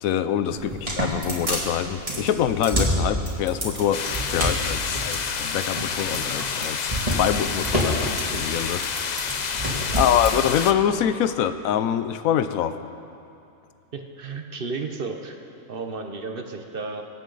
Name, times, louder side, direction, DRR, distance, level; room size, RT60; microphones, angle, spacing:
voice 1, 0.0-4.0 4.3-9.5 9.9-12.8, left 9 dB, 85° left, 12 dB, 1.0 m, -25 dB
sound 1, 0.6-10.3, right 1 dB, 25° right, 2.3 m, -28 dB
sound 2, 3.9-10.7, left 6 dB, 55° left, 0.5 m, -29 dB
voice 2, 13.9-15.4 15.7-17.0, right 4 dB, 50° right, 5 dB, 0.9 m, -33 dB
24.0 x 8.3 x 3.9 m, 2.7 s
omnidirectional pair, 1.4 m